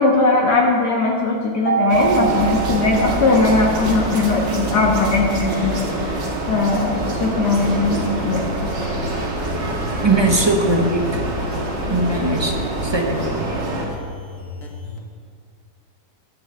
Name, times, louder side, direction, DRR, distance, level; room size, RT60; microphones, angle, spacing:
voice 1, 0.0-6.2 6.5-8.4 11.9-12.0, left 3 dB, 65° left, -2 dB, 1.9 m, -19 dB
Mallet percussion, 1.7-3.9, right 8 dB, 65° right, 0.7 m, -25 dB
sound 1, 1.9-13.9, right 2 dB, 90° right, 2.3 m, -25 dB
sound 2, 7.4-15.0, left 2 dB, 50° left, 1.8 m, -33 dB
voice 2, 10.0-11.2 11.9-12.5 12.8-13.2, right 2 dB, 25° right, 2 dB, 0.6 m, -20 dB
11.0 x 7.4 x 7.1 m, 2.2 s
omnidirectional pair, 1.9 m